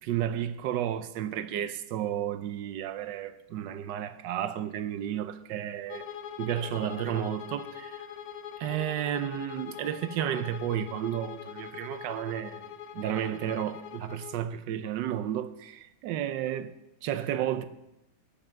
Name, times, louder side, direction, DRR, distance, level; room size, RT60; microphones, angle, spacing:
voice 1, 0.0-6.0 6.4-8.1 8.6-12.7 12.9-16.8 17.0-17.6, right 10 dB, 75° right, 1.2 m, -32 dB
Bowed string instrument, 5.9-14.4, left 9 dB, 70° left, 0.9 m, -43 dB
12.0 x 5.4 x 7.5 m
omnidirectional pair, 2.2 m